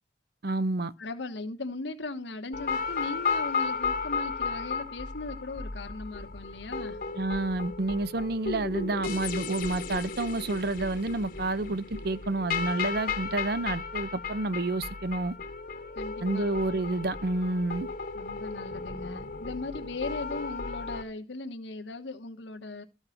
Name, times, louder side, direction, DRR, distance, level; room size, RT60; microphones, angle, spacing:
voice 1, 0.4-0.9 7.1-15.4 16.2-17.9, right 2 dB, 55° right, 0.7 m, -29 dB
voice 2, 1.0-7.0 15.9-16.6 18.1-22.8, left 3 dB, 75° left, 1.2 m, -38 dB
sound 1, 2.5-21.0, left 4 dB, 50° left, 1.2 m, -34 dB
14.0 x 5.6 x 5.7 m
head